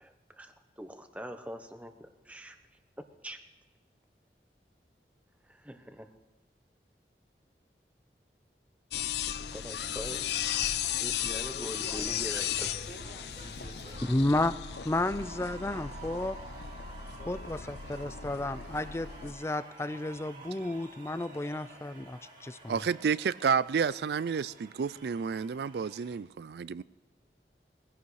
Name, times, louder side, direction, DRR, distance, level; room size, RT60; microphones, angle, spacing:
voice 1, 0.0-2.6 3.2-3.4 5.6-6.1 9.5-10.2 11.0-12.7, equal, 10° right, 0.9 m, -43 dB
sound 1, 8.9-19.3, left 10 dB, 70° left, 0.5 m, -36 dB
voice 2, 11.3-14.6 17.2-17.4, equal, 40° left, 1.9 m, -50 dB
sound 2, 11.7-26.2, right 3 dB, 50° right, 2.2 m, -50 dB
voice 3, 14.0-14.5 14.9-16.4 17.3-22.8, left 2 dB, 15° left, 0.4 m, -32 dB
voice 4, 22.7-26.8, right 6 dB, 70° right, 0.4 m, -30 dB
21.5 x 15.5 x 3.2 m
head